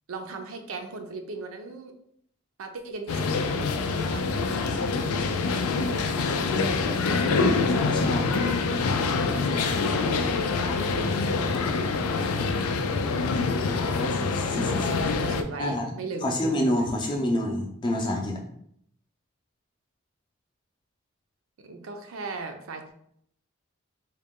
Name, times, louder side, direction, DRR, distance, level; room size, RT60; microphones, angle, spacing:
voice 1, 0.1-1.9 2.6-4.3 5.3-6.9 8.3-8.7 9.5-11.2 12.0-12.4 14.7-14.8 15.3-16.4 21.6-22.9, right 3 dB, 75° right, 5 dB, 0.5 m, -38 dB
sound 1, 3.1-15.4, left 4 dB, 90° left, 0.4 m, -25 dB
voice 2, 7.4-8.3 14.0-15.2 15.6-15.9 16.2-18.4, left 1 dB, 20° left, 1 dB, 0.4 m, -28 dB
3.8 x 2.2 x 3.6 m, 0.70 s
head